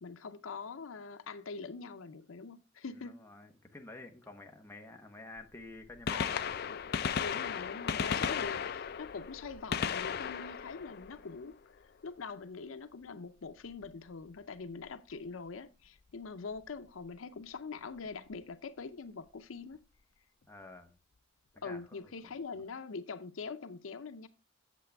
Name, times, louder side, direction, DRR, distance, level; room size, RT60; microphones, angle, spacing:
voice 1, 0.0-3.2 6.1-6.3 6.7-6.8 7.2-11.6 12.0-19.8 21.6-24.3, left 4 dB, 90° left, 0.6 m, -43 dB
voice 2, 2.9-6.5 20.5-21.0 21.5-22.4, left 2 dB, 10° left, 1.0 m, -50 dB
Gunshot gunfire, 5.4-5.5 5.9-11.8 13.7-13.9 14.9-15.0 16.6-16.7 18.0-18.1 18.3-18.4, left 7 dB, 50° left, 0.4 m, -35 dB
8.3 x 7.5 x 3.4 m
head